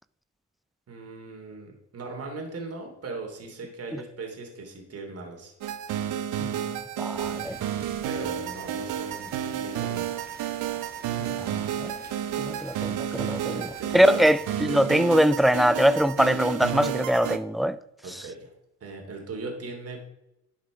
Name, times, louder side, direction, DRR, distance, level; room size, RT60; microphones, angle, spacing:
voice 1, 0.9-5.5 8.0-10.2 11.2-11.7 13.5-14.3 18.0-18.5 18.8-20.0, right 3 dB, 50° right, 2.9 m, -39 dB
sound 1, 5.6-17.4, right 10 dB, 85° right, 0.9 m, -31 dB
voice 2, 7.0-7.6 11.4-11.5 11.8-11.9 12.4-13.7 13.9-17.8, equal, ahead, 0.4 m, -22 dB
sound 2, 7.1-14.6, right 2 dB, 30° right, 2.0 m, -48 dB
11.5 x 5.7 x 5.0 m
cardioid pair, 90°, 30 cm